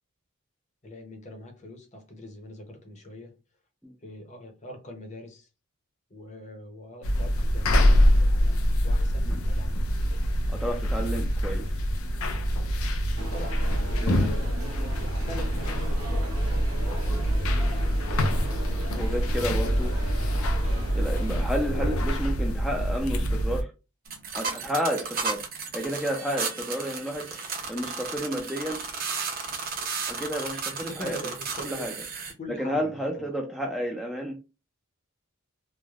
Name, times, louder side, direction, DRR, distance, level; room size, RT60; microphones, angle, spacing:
voice 1, 0.8-3.4 4.0-5.5 6.1-9.8 13.3-17.2 30.7-31.9 32.4-33.4, left 1 dB, 35° left, 0.7 m, -43 dB
sound 1, 7.0-23.6, equal, 80° left, 0.5 m, -25 dB
voice 2, 10.5-11.6 14.0-14.3 18.9-19.9 20.9-23.7 24.3-25.4 25.7-27.4 27.7-28.8 30.1-31.2 31.6-31.9 32.6-34.4, equal, ahead, 0.4 m, -31 dB
sound 2, 13.2-21.4, right 2 dB, 85° right, 0.9 m, -40 dB
sound 3, 24.1-32.3, right 4 dB, 45° right, 0.7 m, -34 dB
3.2 x 2.1 x 2.3 m
head